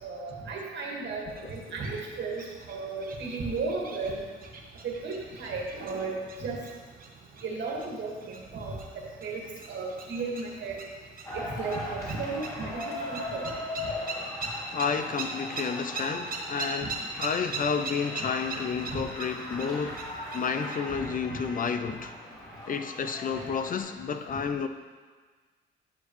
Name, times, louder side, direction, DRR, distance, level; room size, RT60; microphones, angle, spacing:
voice 1, 0.0-4.2 4.8-6.6 7.4-8.8 9.2-9.4 9.7-10.8 11.3-13.6 16.8-16.9 18.9-19.0, right 3 dB, 65° right, -2 dB, 1.9 m, -34 dB
sound 1, 1.3-20.8, right 3 dB, 45° right, 1.1 m, -41 dB
sound 2, 11.2-23.8, left 1 dB, 20° left, 2.7 m, -39 dB
voice 2, 14.7-20.0 20.3-22.1 22.7-24.7, left 6 dB, 45° left, 8 dB, 0.5 m, -31 dB
10.5 x 6.5 x 3.2 m, 1.5 s
cardioid pair, 90°, 20 cm